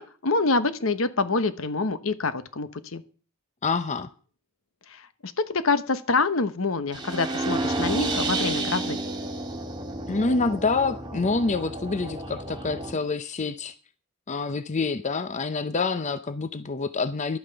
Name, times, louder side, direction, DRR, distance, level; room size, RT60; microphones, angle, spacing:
voice 1, 0.0-3.0 4.9-9.0, left 3 dB, 70° left, 12 dB, 1.1 m, -26 dB
voice 2, 3.6-4.1 10.1-13.7 14.3-17.4, left 3 dB, 35° left, 11 dB, 0.6 m, -27 dB
sound 1, 6.9-12.9, right 2 dB, 20° right, 2.2 m, -30 dB
11.5 x 8.6 x 6.9 m, 0.39 s
head